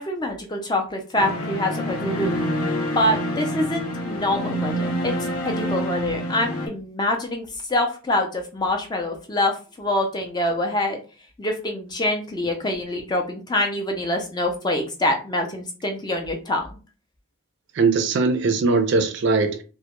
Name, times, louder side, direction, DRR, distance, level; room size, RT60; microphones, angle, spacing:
voice 1, 0.0-11.0 11.4-16.7, left 1 dB, 20° left, 0.4 m, -25 dB
sound 1, 1.2-6.7, equal, 75° left, 0.5 m, -27 dB
voice 2, 17.8-19.6, right 4 dB, 55° right, 0.3 m, -20 dB
2.2 x 2.0 x 2.9 m
head